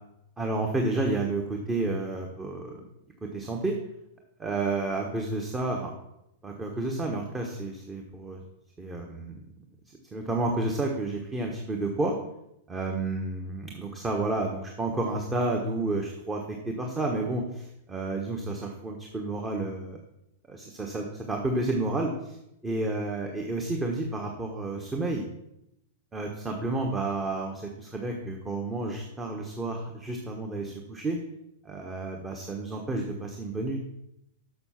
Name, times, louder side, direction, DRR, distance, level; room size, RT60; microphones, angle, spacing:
voice 1, 0.4-2.8 3.3-3.7 4.4-5.9 6.4-8.4 8.8-9.4 10.1-12.2 12.7-20.0 20.5-22.4 22.6-25.2 26.1-31.2 31.6-33.8, right 2 dB, 15° right, 1 dB, 1.3 m, -31 dB
6.9 x 6.4 x 5.8 m, 0.83 s
hypercardioid pair, 110°, 0 cm